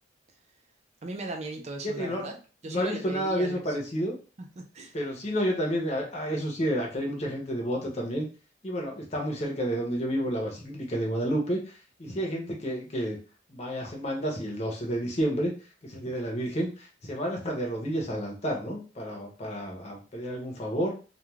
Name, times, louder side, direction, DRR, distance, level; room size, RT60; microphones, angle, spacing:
voice 1, 1.0-2.3 2.6-3.6 4.4-5.0, right 2 dB, 35° right, 4 dB, 0.5 m, -37 dB
voice 2, 1.8-2.4 2.7-4.1 4.9-8.3 8.6-13.2 13.5-15.5 15.8-20.9, equal, 35° left, -1 dB, 0.8 m, -30 dB
2.4 x 2.3 x 3.1 m, 0.36 s
head